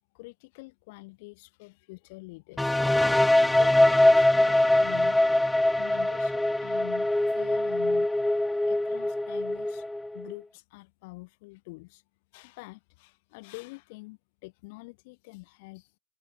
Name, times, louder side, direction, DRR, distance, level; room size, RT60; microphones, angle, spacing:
voice 1, 0.1-2.8 3.5-8.1 8.7-9.9 10.1-12.0 12.3-16.0, left 25 dB, 50° left, 4.7 m, -46 dB
sound 1, 2.6-10.3, left 1 dB, 5° left, 0.9 m, -23 dB
open air
figure-of-eight pair, 90°, 0 cm